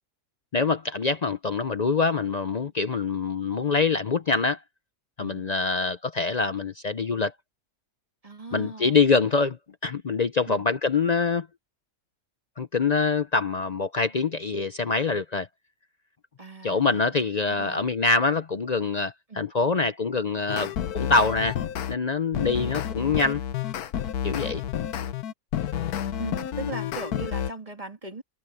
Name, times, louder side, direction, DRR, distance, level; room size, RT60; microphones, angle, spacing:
voice 1, 0.5-4.6 5.2-7.3 8.5-9.6 9.8-11.5 12.6-15.5 16.6-21.6 21.9-23.4 24.2-24.6, left 4 dB, 50° left, 0.5 m, -25 dB
voice 2, 8.2-9.0 10.5-10.6 16.4-17.8 19.3-19.4 22.3-22.8 26.2-28.2, right 3 dB, 25° right, 2.3 m, -39 dB
sound 1, 20.5-22.0 22.3-27.5, left 10 dB, 90° left, 1.4 m, -30 dB
omnidirectional pair, 1.6 m